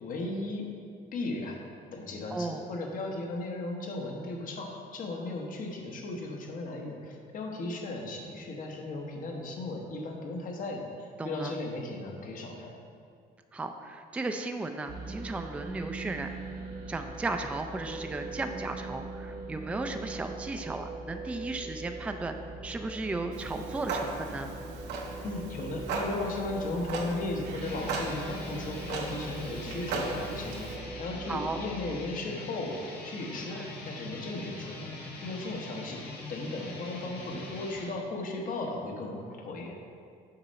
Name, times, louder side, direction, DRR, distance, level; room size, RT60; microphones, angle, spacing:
voice 1, 0.0-0.7 1.1-1.6 1.9-12.7 25.2-36.0 36.3-39.8, left 2 dB, 55° left, 1 dB, 1.1 m, -36 dB
voice 2, 2.3-2.6 11.2-11.5 13.5-16.3 16.9-22.3 22.6-24.5 31.3-31.6 33.5-33.7, right 3 dB, 5° right, 6 dB, 0.3 m, -35 dB
sound 1, 14.9-31.7, right 2 dB, 55° right, 0.9 m, -41 dB
Clock, 23.3-30.8, right 3 dB, 85° right, 0.9 m, -38 dB
sound 2, 27.5-37.9, left 2 dB, 85° left, 1.5 m, -43 dB
6.9 x 5.4 x 4.1 m, 2.3 s
cardioid pair, 110°, 17 cm